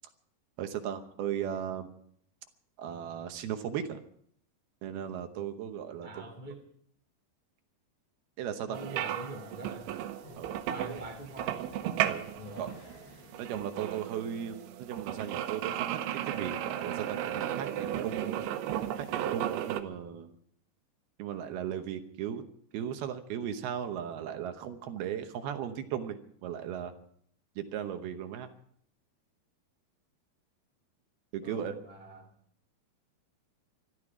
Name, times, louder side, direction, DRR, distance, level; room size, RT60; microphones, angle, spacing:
voice 1, 0.6-1.9 2.8-4.0 4.8-6.3 8.4-9.1 10.4-10.5 10.8-11.0 12.0-12.3 12.6-12.7 13.4-15.9 16.2-18.5 19.0-20.3 21.2-22.4 22.7-26.9 27.6-28.5 31.3-31.7, right 9 dB, 70° right, 7 dB, 2.6 m, -37 dB
voice 2, 6.0-6.6 8.7-9.9 10.7-11.6 12.3-12.7 31.4-32.3, right 1 dB, 85° left, 2 dB, 0.4 m, -43 dB
sound 1, 8.7-19.8, right 11 dB, 90° right, 3.4 m, -35 dB
Growling, 10.2-16.1, left 1 dB, 65° left, 6.8 m, -56 dB
21.0 x 14.0 x 4.9 m, 0.64 s
omnidirectional pair, 5.2 m